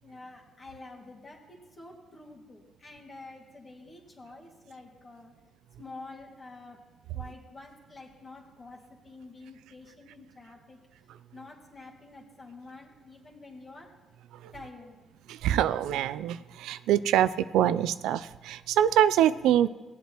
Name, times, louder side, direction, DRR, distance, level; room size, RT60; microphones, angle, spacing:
voice 1, 0.0-5.3 5.8-6.8 7.1-10.8 11.3-13.9 14.5-15.0, left 3 dB, 30° left, -1 dB, 2.1 m, -48 dB
voice 2, 15.3-19.7, right 11 dB, 90° right, 14 dB, 0.3 m, -24 dB
18.0 x 8.2 x 3.0 m, 1.2 s
cardioid pair, 90°, 0 cm